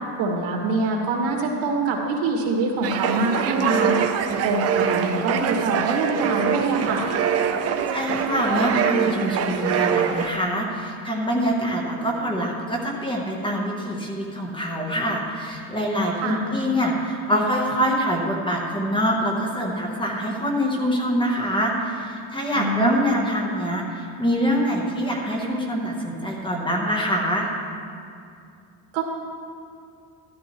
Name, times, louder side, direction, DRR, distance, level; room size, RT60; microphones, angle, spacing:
voice 1, 0.2-4.0 4.4-7.0 16.2-16.4 22.5-23.0 28.9-29.0, right 3 dB, 75° right, 0 dB, 2.0 m, -24 dB
sound 1, 2.8-10.3, right 8 dB, 35° right, 0.5 m, -24 dB
voice 2, 7.9-27.5, equal, 10° left, -2 dB, 0.9 m, -25 dB
12.5 x 11.5 x 3.0 m, 2.4 s
cardioid pair, 165°, 43 cm